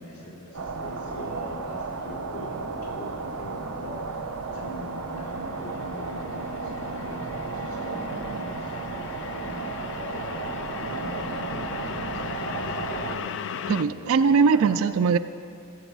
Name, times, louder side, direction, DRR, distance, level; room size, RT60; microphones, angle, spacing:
voice 1, 0.0-14.7, equal, 80° left, -4 dB, 3.5 m, -42 dB
sound 1, 0.5-13.2, right 3 dB, 90° right, 0.8 m, -33 dB
sound 2, 4.7-13.8, left 7 dB, 55° left, 0.3 m, -38 dB
voice 2, 13.7-15.2, right 5 dB, 65° right, 11 dB, 0.3 m, -20 dB
16.0 x 8.0 x 4.7 m, 2.4 s
head